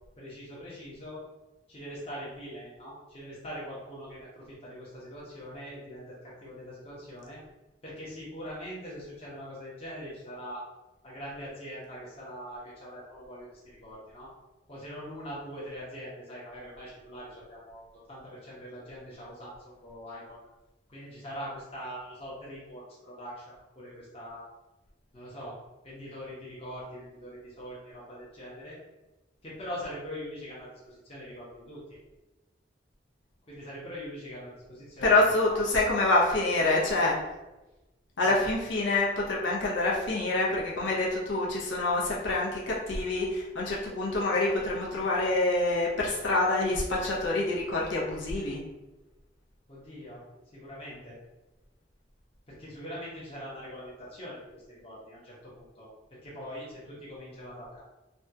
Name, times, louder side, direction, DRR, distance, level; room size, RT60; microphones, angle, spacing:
voice 1, 0.2-1.2 1.7-7.4 7.8-10.6 11.0-14.3 14.7-20.5 20.9-24.4 25.1-25.6 25.8-28.8 29.4-32.0 33.5-35.6 38.2-38.5 49.7-50.2 50.5-51.2 52.5-57.8, equal, 30° left, -8 dB, 0.8 m, -42 dB
voice 2, 35.0-37.2 38.2-48.6, left 2 dB, 70° left, -4 dB, 0.7 m, -26 dB
3.4 x 2.2 x 2.7 m, 1.0 s
head